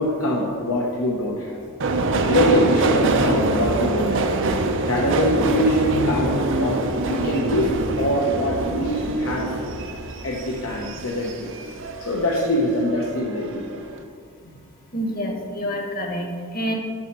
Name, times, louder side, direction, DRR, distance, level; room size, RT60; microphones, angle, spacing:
voice 1, 0.0-1.6 2.2-4.3 4.8-7.7 8.0-9.5 10.2-13.8, left 1 dB, 70° left, -2 dB, 1.0 m, -23 dB
Subway metro underground, 1.8-12.5 12.9-13.6 13.9-14.0, right 2 dB, 60° right, 0.7 m, -24 dB
voice 2, 14.9-16.7, equal, 45° left, 2 dB, 1.4 m, -27 dB
11.5 x 4.3 x 5.3 m, 2.1 s
head